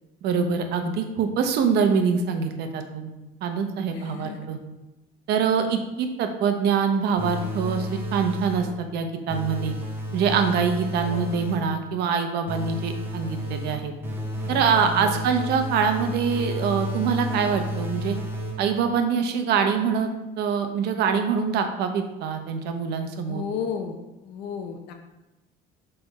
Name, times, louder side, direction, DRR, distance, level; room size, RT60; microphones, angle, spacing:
voice 1, 0.2-3.1 3.4-4.6 5.3-9.7 10.1-13.9 14.5-18.2 18.6-20.1 20.4-23.4, right 6 dB, 70° right, 6 dB, 0.9 m, -24 dB
voice 2, 3.9-4.5 10.7-11.2 14.4-15.3 23.2-24.0 24.2-24.9, left 7 dB, 85° left, 4 dB, 0.6 m, -34 dB
sound 1, 7.2-8.8 9.3-11.8 12.5-18.9, equal, 10° right, 1.1 m, -32 dB
6.8 x 3.5 x 4.1 m, 1.0 s
cardioid pair, 110°, 18 cm